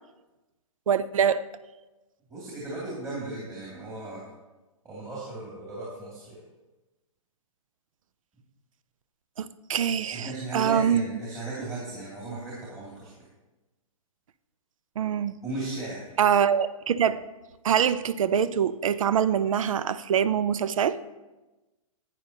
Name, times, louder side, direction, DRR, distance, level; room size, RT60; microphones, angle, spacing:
voice 1, 0.9-1.4 9.4-11.2 15.0-15.4 16.2-17.2 17.6-21.0, right 8 dB, 70° right, 0.5 m, -24 dB
voice 2, 2.3-4.2 4.8-6.4 10.1-13.1 15.4-16.2, right 2 dB, 20° right, 2.4 m, -36 dB
11.0 x 9.1 x 2.8 m
hypercardioid pair, 125°, 18 cm